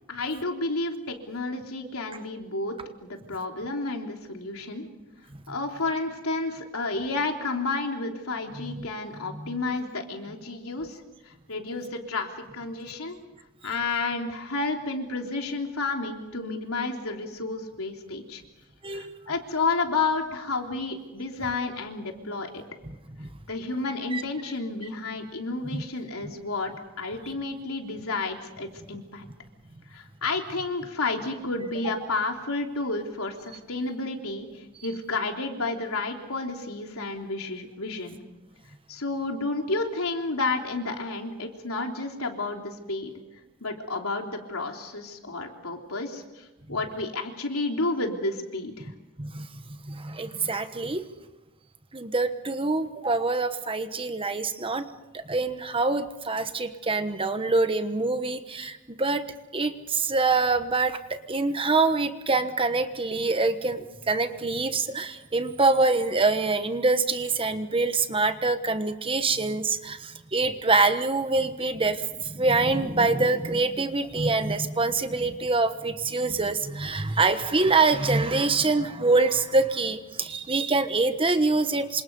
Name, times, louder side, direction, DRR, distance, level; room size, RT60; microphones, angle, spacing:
voice 1, 0.1-2.7 3.0-4.9 5.5-13.2 13.6-18.4 18.9-22.6 23.5-26.7 27.0-29.3 29.9-38.2 38.9-43.1 43.6-48.9, left 3 dB, 80° left, 2 dB, 3.5 m, -31 dB
voice 2, 49.2-51.0 51.9-54.9 55.3-59.2 59.5-82.0, right 3 dB, 25° right, 9 dB, 1.2 m, -25 dB
28.0 x 26.0 x 5.5 m, 1.1 s
head